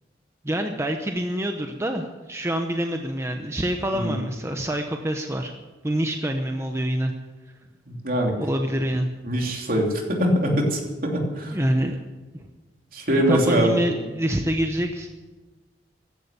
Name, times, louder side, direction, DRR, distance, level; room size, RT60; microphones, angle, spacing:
voice 1, 0.4-5.5 5.8-7.1 8.4-9.1 11.5-12.0 13.3-15.1, right 1 dB, 15° right, 4 dB, 0.8 m, -26 dB
voice 2, 7.9-8.3 9.2-11.6 12.9-13.7, equal, 50° right, 1 dB, 3.0 m, -23 dB
15.0 x 11.0 x 6.9 m, 1.3 s
head